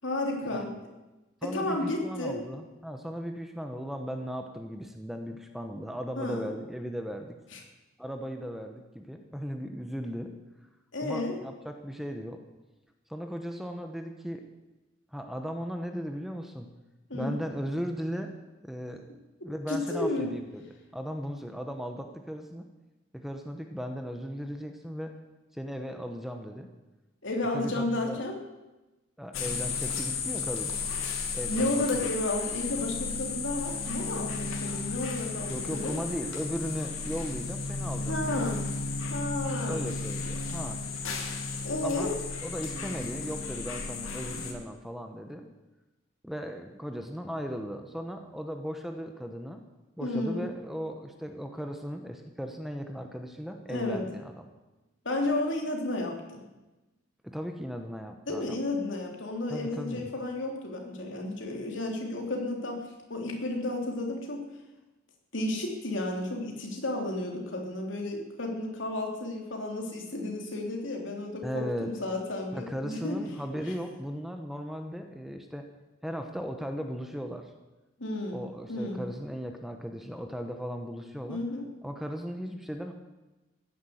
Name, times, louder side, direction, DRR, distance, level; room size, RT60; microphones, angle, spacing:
voice 1, 0.0-0.8 1.4-2.4 6.2-6.5 7.5-7.6 10.9-11.4 17.1-17.3 19.7-20.3 27.2-28.4 31.5-35.9 38.1-38.6 39.1-39.9 41.6-42.2 50.0-50.4 53.7-54.0 55.0-56.4 58.3-64.4 65.3-73.2 78.0-79.0 81.3-81.7, left 2 dB, 60° left, 1 dB, 3.3 m, -32 dB
voice 2, 1.4-7.3 8.0-10.3 11.0-12.4 13.1-14.5 15.1-16.7 17.1-18.3 18.6-19.0 19.4-20.6 20.9-22.6 23.1-25.1 25.5-26.7 27.5-28.2 29.2-30.8 31.3-32.1 35.5-38.6 39.7-40.8 41.8-42.1 42.4-45.5 46.2-49.7 50.0-54.4 57.2-58.6 59.5-60.1 71.4-71.9 72.5-75.6 76.0-77.5 78.3-81.4 81.8-82.9, equal, ahead, 5 dB, 1.0 m, -37 dB
sound 1, 29.3-44.5, left 4 dB, 80° left, 2.5 m, -34 dB
15.5 x 10.5 x 8.0 m, 1.1 s
head